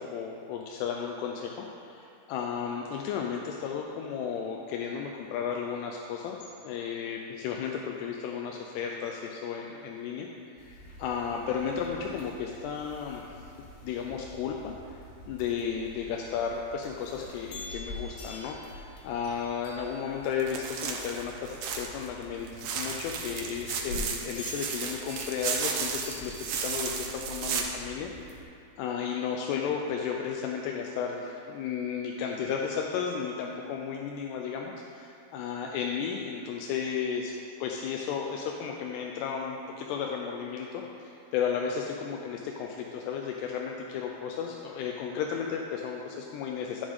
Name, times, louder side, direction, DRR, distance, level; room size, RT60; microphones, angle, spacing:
voice 1, 0.0-6.4 6.6-13.3 13.8-14.7 15.3-28.5 28.8-37.3 37.6-46.9, left 7 dB, 90° left, 1 dB, 2.6 m, -34 dB
sound 1, 10.6-28.4, left 1 dB, 75° left, 2.3 m, -46 dB
sound 2, 20.4-22.1 22.4-27.6, right 6 dB, 85° right, 1.8 m, -34 dB
13.0 x 5.2 x 3.5 m, 2.6 s
omnidirectional pair, 4.7 m